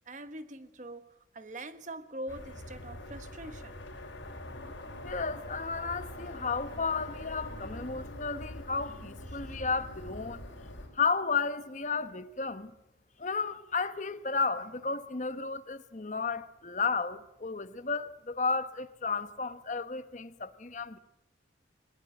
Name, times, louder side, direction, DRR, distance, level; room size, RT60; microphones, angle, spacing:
voice 1, 0.0-3.8, right 1 dB, 40° right, 1.3 m, -43 dB
sound 1, 2.3-10.9, left 1 dB, 85° left, 4.6 m, -43 dB
voice 2, 5.0-10.4 10.9-12.7 13.2-21.0, left 4 dB, 40° left, 1.0 m, -33 dB
21.0 x 20.5 x 9.0 m
head